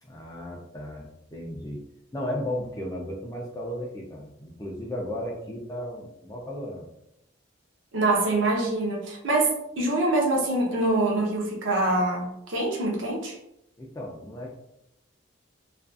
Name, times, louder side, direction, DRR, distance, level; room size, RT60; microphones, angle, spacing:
voice 1, 0.0-1.8 2.1-6.9 13.8-14.6, left 1 dB, 15° left, -1 dB, 0.3 m, -35 dB
voice 2, 7.9-13.4, right 2 dB, 65° right, -1 dB, 0.6 m, -25 dB
2.5 x 2.3 x 2.3 m, 0.81 s
head